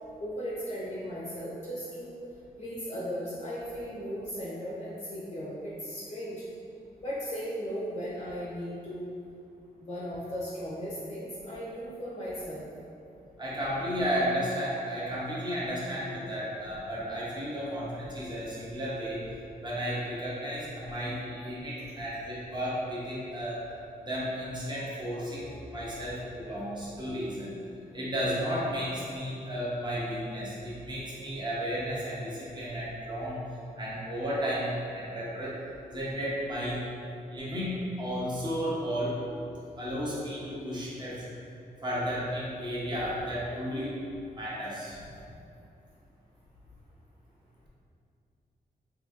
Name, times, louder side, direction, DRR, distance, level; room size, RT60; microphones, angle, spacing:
voice 1, 0.2-2.1 2.6-6.4 7.0-9.1 9.8-12.6, equal, 35° left, -7 dB, 0.5 m, -36 dB
voice 2, 13.4-19.2 19.6-23.6 24.0-27.5 27.9-33.4 33.8-35.6 35.9-36.9 37.3-39.2 39.8-41.3 41.8-43.9 44.3-45.0, equal, 25° right, -7 dB, 0.7 m, -33 dB
3.8 x 2.7 x 2.3 m, 2.6 s
wide cardioid pair, 160°, 16 cm